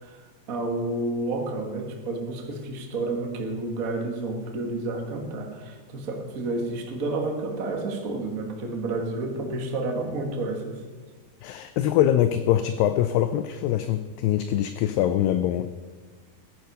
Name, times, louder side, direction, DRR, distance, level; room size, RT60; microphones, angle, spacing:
voice 1, 0.0-10.8, right 2 dB, 90° right, 2 dB, 0.7 m, -30 dB
voice 2, 11.4-15.7, left 11 dB, 80° left, 11 dB, 2.0 m, -23 dB
15.5 x 10.5 x 5.4 m, 1.4 s
omnidirectional pair, 4.5 m